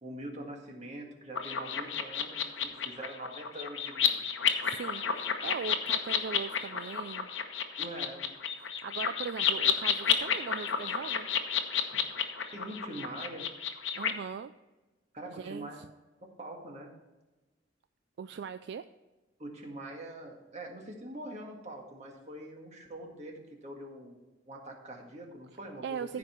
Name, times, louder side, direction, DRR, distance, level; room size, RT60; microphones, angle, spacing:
voice 1, 0.0-4.2 7.8-8.2 12.5-13.5 15.1-15.8 16.4-16.9 19.4-26.2, right 1 dB, 40° right, 1 dB, 1.9 m, -44 dB
sound 1, 1.3-14.1, left 7 dB, 85° left, 0.9 m, -31 dB
voice 2, 4.6-7.3 8.8-11.3 14.0-14.5 15.3-15.9 18.2-18.8 25.8-26.2, right 6 dB, 65° right, 11 dB, 0.3 m, -39 dB
14.5 x 5.2 x 4.4 m, 1.1 s
head